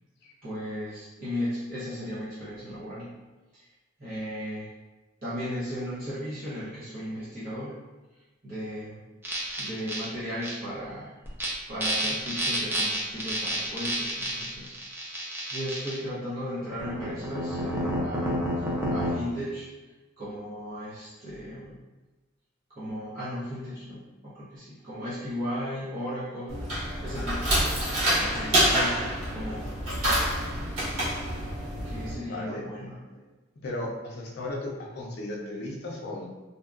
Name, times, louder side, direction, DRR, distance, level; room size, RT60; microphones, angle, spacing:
voice 1, 0.4-3.2 3.5-3.7 4.0-4.7 5.2-7.7 8.4-9.0 9.6-11.1 11.7-14.8 15.5-18.6 18.9-19.7 20.2-21.8 22.7-27.6 28.2-29.7 31.8-33.2, equal, 45° right, -12 dB, 0.8 m, -36 dB
sound 1, 9.2-10.0 10.4-10.5 11.2-11.5 11.8-16.0 16.8-19.1, right 1 dB, 10° right, 0.4 m, -30 dB
sound 2, 26.5-32.1, equal, 90° right, 1.3 m, -27 dB
voice 2, 32.1-32.6 33.6-36.2, left 2 dB, 50° left, -2 dB, 0.5 m, -35 dB
2.8 x 2.3 x 2.4 m, 1.2 s
head